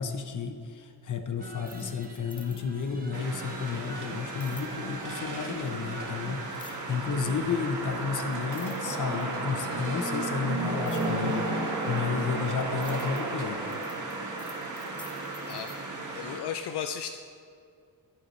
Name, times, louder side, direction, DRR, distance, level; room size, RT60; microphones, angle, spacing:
voice 1, 0.0-13.6, left 6 dB, 50° left, 7 dB, 0.9 m, -32 dB
sound 1, 1.4-8.1, right 2 dB, 20° right, 1.0 m, -44 dB
sound 2, 1.6-2.9 4.4-4.7 6.5-7.0 7.9-8.0 8.3-9.4 10.9-11.1 12.0-15.8, left 2 dB, 10° left, 0.8 m, -50 dB
sound 3, 3.1-16.4, right 2 dB, 45° right, 1.7 m, -33 dB
voice 2, 16.1-17.2, left 8 dB, 75° left, 7 dB, 0.6 m, -34 dB
11.0 x 11.0 x 3.2 m, 2.3 s
wide cardioid pair, 120°, 40 cm